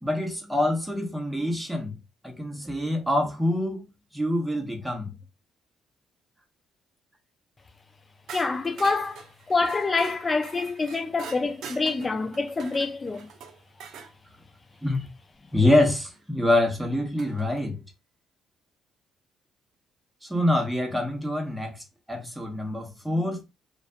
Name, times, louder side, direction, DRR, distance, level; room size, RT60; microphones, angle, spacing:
voice 1, 0.0-2.0 2.2-3.9 4.1-5.1 14.8-15.1 15.5-17.8 20.2-23.4, left 1 dB, 5° right, 0.9 m, -25 dB
voice 2, 8.3-13.3, left 3 dB, 30° left, 0.4 m, -26 dB
sound 1, 8.3-14.1 16.1-16.2 17.2-17.6, right 6 dB, 70° right, 0.5 m, -44 dB
2.5 x 2.2 x 2.4 m
supercardioid pair, 75°, 0 cm